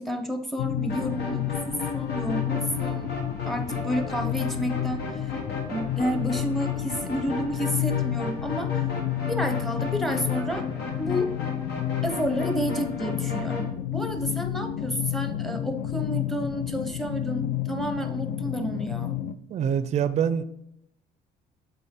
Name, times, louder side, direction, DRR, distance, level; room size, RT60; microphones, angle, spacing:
voice 1, 0.0-1.5 1.9-3.1 3.5-5.0 5.7-8.7 9.3-10.6 11.0-11.3 12.0-19.1, equal, ahead, 6 dB, 0.8 m, -30 dB
sound 1, 0.6-19.3, left 11 dB, 60° left, 0.4 m, -30 dB
sound 2, 0.9-13.7, left 1 dB, 80° left, 1.6 m, -37 dB
voice 2, 19.5-20.4, right 8 dB, 40° right, 13 dB, 0.4 m, -25 dB
6.7 x 4.3 x 3.7 m, 0.77 s
cardioid pair, 110°, 17 cm